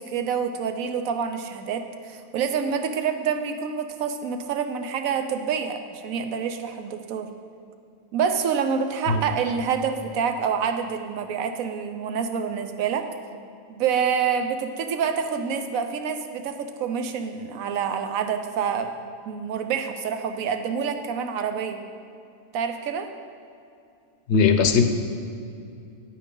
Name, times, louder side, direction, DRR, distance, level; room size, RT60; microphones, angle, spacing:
voice 1, 0.0-7.3 8.1-13.1 13.7-18.9 19.3-21.9 22.5-23.1, right 6 dB, 75° right, 7 dB, 1.1 m, -27 dB
voice 2, 24.3-24.8, left 5 dB, 60° left, 7 dB, 0.9 m, -18 dB
9.4 x 8.8 x 3.8 m, 2.6 s
omnidirectional pair, 1.5 m